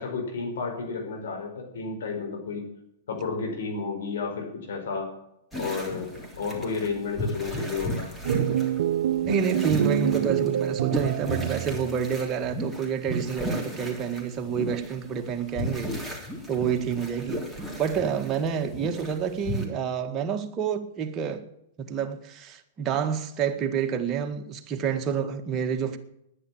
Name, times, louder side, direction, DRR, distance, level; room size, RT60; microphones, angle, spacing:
voice 1, 0.0-2.6 3.1-5.1 5.5-8.1, left 4 dB, 70° left, 4.9 m, -32 dB
sound 1, 5.5-19.6, equal, 5° left, 3.4 m, -35 dB
sound 2, 8.2-12.0, right 11 dB, 65° right, 0.6 m, -26 dB
voice 2, 9.2-15.9 16.5-17.4 17.8-21.4 21.8-26.0, right 7 dB, 30° right, 1.7 m, -28 dB
10.0 x 10.0 x 8.7 m
hypercardioid pair, 110°, 0 cm